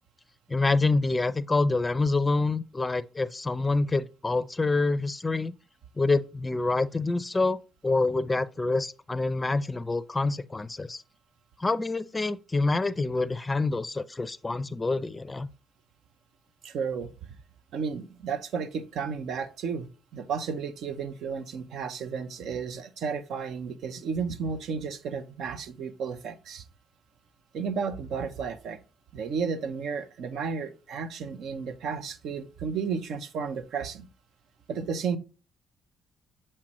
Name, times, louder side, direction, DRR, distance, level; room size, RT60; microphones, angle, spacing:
voice 1, 0.5-5.5 6.0-11.0 11.6-15.5, left 3 dB, 25° left, 0.4 m, -27 dB
voice 2, 16.6-17.1 17.7-26.6 27.5-28.8 29.1-34.0 34.7-35.2, right 6 dB, 70° right, 0.6 m, -33 dB
7.4 x 4.3 x 3.0 m
supercardioid pair, 60°, 0 cm